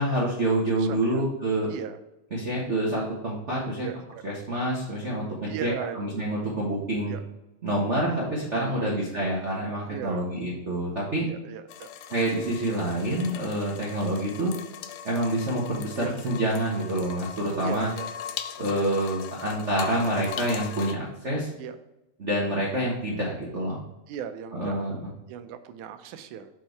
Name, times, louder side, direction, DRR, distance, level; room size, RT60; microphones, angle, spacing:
voice 1, 0.0-1.7 2.3-3.9 4.2-7.2 7.6-11.3 12.1-14.5 15.0-17.9 18.6-21.5 22.2-23.8 24.5-25.1, right 1 dB, 55° right, -4 dB, 0.7 m, -27 dB
voice 2, 0.8-1.3 1.7-2.0 3.5-4.2 5.5-6.0 7.1-7.2 8.5-9.3 9.9-10.3 11.3-11.9 16.0-16.1 17.6-18.1 21.6-21.8 24.1-24.8 25.3-26.5, right 9 dB, 85° right, 9 dB, 2.1 m, -37 dB
sound 1, 11.7-20.9, left 9 dB, 80° left, 1.6 m, -40 dB
6.8 x 4.5 x 4.6 m, 0.95 s
omnidirectional pair, 3.5 m